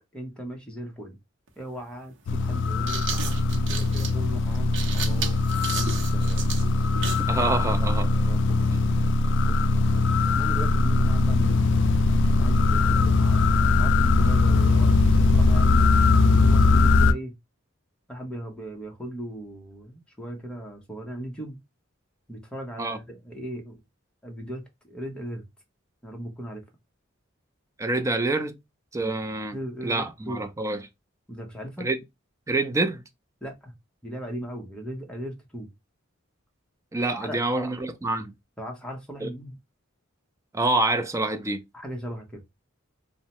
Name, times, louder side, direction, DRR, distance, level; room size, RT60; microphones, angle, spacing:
voice 1, 0.1-1.2 1.6-5.5 5.7-6.5 8.1-8.9 9.4-9.8 10.3-11.6 12.4-17.3 18.1-21.6 22.3-23.8 24.2-25.4 26.0-26.6 29.0-29.2 29.5-30.4 31.3-31.9 33.4-33.7 34.0-35.7 37.1-37.7 38.6-39.6 41.7-42.4, equal, 5° left, 0.7 m, -38 dB
sound 1, 1.5-1.6 2.6-7.3, right 6 dB, 65° right, 0.7 m, -34 dB
sound 2, 2.3-17.1, left 3 dB, 60° left, 0.3 m, -21 dB
voice 2, 7.3-8.1 22.8-23.0 27.8-28.5 28.9-29.6 29.8-30.8 31.8-32.0 32.5-33.0 36.9-38.3 39.2-39.3 40.5-41.6, right 2 dB, 15° right, 0.4 m, -26 dB
2.7 x 2.1 x 2.8 m
head